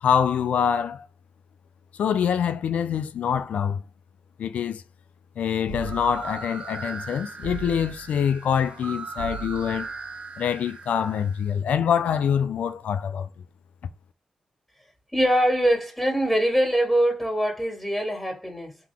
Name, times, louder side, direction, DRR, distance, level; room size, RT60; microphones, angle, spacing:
voice 1, 0.0-1.1 1.9-3.8 4.4-4.8 5.4-9.9 10.4-13.3, left 8 dB, 85° left, 0.4 m, -25 dB
sound 1, 5.7-6.4 7.4-8.2 9.2-9.9, right 6 dB, 70° left, 1.3 m, -38 dB
sound 2, 5.7-11.5, right 4 dB, 60° right, 0.6 m, -39 dB
voice 2, 15.1-18.8, equal, 10° left, 2.3 m, -23 dB
3.8 x 2.9 x 3.4 m
cardioid pair, 50°, 2 cm